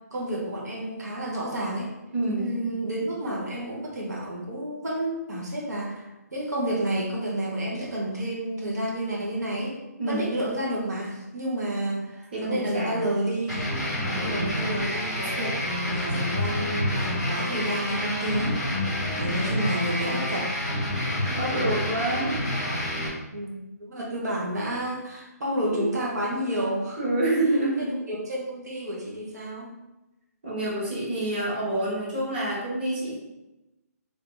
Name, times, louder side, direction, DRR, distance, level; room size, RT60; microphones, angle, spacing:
voice 1, 0.1-1.9 2.4-6.1 6.3-9.8 10.1-13.6 14.1-20.5 23.3-23.5 23.8-27.0 28.1-29.7, right 1 dB, 75° right, -3 dB, 1.2 m, -30 dB
voice 2, 2.1-2.5 10.0-10.2 12.3-13.0 14.0-14.7 21.2-22.4 25.7-25.9 27.0-27.9 30.4-33.1, right 1 dB, 35° right, -7 dB, 1.2 m, -28 dB
sound 1, 13.5-23.1, left 1 dB, 5° right, 0.6 m, -28 dB
3.4 x 2.7 x 3.9 m, 1.0 s
hypercardioid pair, 175°, 9 cm